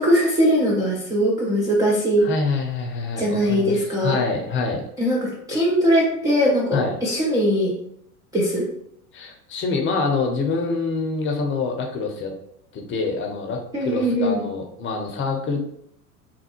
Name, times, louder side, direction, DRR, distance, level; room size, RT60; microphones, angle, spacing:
voice 1, 0.0-2.3 3.2-4.2 5.0-7.7 8.3-8.7 13.7-14.4, equal, 10° right, -4 dB, 0.3 m, -20 dB
voice 2, 2.2-4.8 6.7-6.9 9.1-12.3 12.7-15.6, left 4 dB, 25° left, 2 dB, 0.6 m, -26 dB
3.3 x 2.2 x 2.9 m, 0.73 s
figure-of-eight pair, 80°, 44 cm